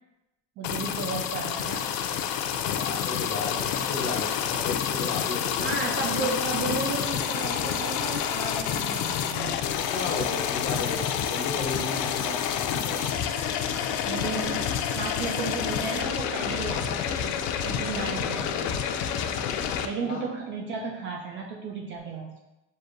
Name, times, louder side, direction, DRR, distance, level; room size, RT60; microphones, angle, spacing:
sound 1, 0.6-19.9, left 8 dB, 80° left, 0.4 m, -28 dB
voice 1, 0.6-1.9 5.6-9.6 14.1-17.4 17.6-18.8 19.8-22.4, right 4 dB, 40° right, 0 dB, 0.4 m, -34 dB
voice 2, 2.5-6.2 9.9-13.0 20.0-20.2, left 3 dB, 50° left, -3 dB, 1.1 m, -34 dB
6.4 x 2.6 x 2.5 m, 0.97 s
cardioid pair, 170°, 29 cm